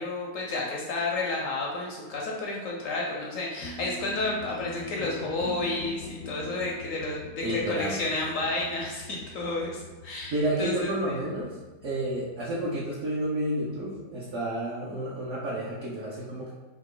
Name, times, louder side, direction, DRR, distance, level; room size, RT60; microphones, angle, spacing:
voice 1, 0.0-11.2, left 2 dB, 65° left, -2 dB, 0.8 m, -31 dB
sound 1, 3.6-13.7, left 3 dB, 85° left, 1.3 m, -44 dB
voice 2, 7.4-8.0 10.3-11.6 11.8-16.5, right 1 dB, 55° right, -7 dB, 1.0 m, -30 dB
3.7 x 3.1 x 3.7 m, 1.2 s
omnidirectional pair, 1.9 m